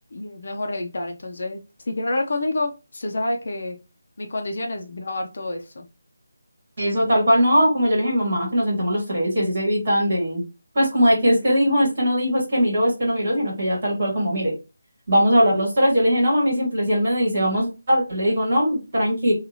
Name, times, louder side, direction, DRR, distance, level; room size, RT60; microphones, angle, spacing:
voice 1, 0.1-1.6 1.9-3.8 4.2-5.9, left 2 dB, 40° left, 3 dB, 0.4 m, -28 dB
voice 2, 6.8-10.4 10.7-14.5 15.1-19.3, equal, 35° right, -3 dB, 1.3 m, -20 dB
2.6 x 2.3 x 2.9 m, 0.29 s
figure-of-eight pair, 180°, 0 cm